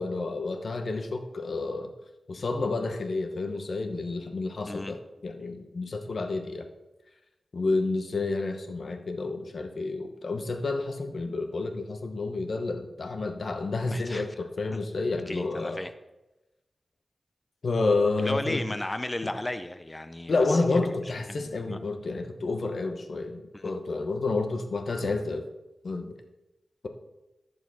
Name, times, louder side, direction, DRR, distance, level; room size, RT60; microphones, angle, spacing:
voice 1, 0.0-1.9 2.3-6.7 7.5-15.8 17.6-18.6 20.3-25.4 25.8-26.1, left 3 dB, 70° left, 5 dB, 1.0 m, -30 dB
voice 2, 13.9-14.3 15.3-15.9 18.2-20.8 21.3-21.9 23.5-23.7, left 1 dB, 25° left, 9 dB, 0.5 m, -35 dB
10.5 x 7.0 x 4.1 m, 1.0 s
wide cardioid pair, 80°, 0 cm